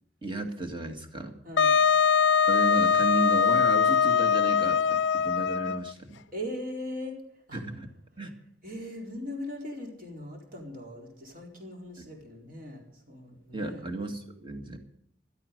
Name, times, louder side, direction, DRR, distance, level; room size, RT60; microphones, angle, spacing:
voice 1, 0.2-1.4 2.5-6.2 7.5-7.9 8.2-8.3 12.0-12.1 13.5-14.8, right 2 dB, 25° right, 5 dB, 2.0 m, -34 dB
voice 2, 1.4-1.7 6.3-7.2 7.5-7.6 8.6-13.8, left 1 dB, 50° right, 0 dB, 4.3 m, -39 dB
Wind instrument woodwind instrument, 1.6-5.9, left 6 dB, 75° left, 0.5 m, -22 dB
16.5 x 13.0 x 5.4 m, 0.74 s
head